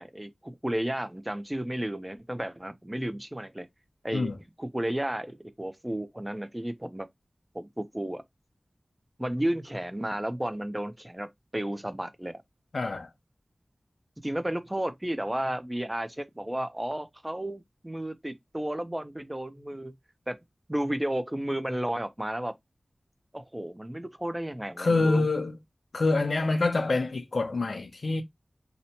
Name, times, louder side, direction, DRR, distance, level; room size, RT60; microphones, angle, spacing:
voice 1, 0.0-3.7 4.0-4.3 4.6-7.1 7.5-8.2 9.2-12.4 14.2-20.0 20.3-20.4 20.7-22.6 23.3-25.2, right 1 dB, 15° right, 0.4 m, -33 dB
voice 2, 12.7-13.1 24.8-25.5 25.9-28.2, left 3 dB, 85° left, 0.5 m, -26 dB
2.7 x 2.1 x 2.7 m
wide cardioid pair, 75°, 0 cm